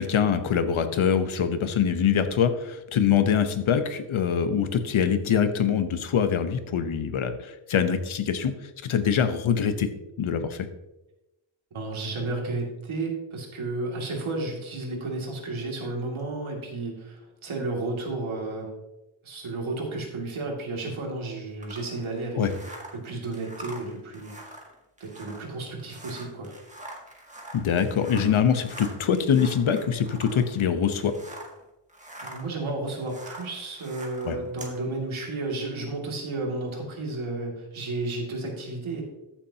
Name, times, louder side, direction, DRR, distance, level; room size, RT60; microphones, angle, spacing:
voice 1, 0.0-8.5 8.8-9.9 10.2-10.7 22.4-22.5 27.5-31.1 34.2-34.4, left 7 dB, 80° left, 9 dB, 1.0 m, -24 dB
voice 2, 11.7-18.7 19.2-24.6 25.0-26.5 28.0-28.2 32.2-39.0, right 2 dB, 85° right, 0 dB, 2.5 m, -32 dB
sound 1, 21.6-31.6 31.9-34.8, right 1 dB, 15° right, 1.9 m, -44 dB
14.5 x 7.3 x 2.8 m, 0.99 s
wide cardioid pair, 110°, 47 cm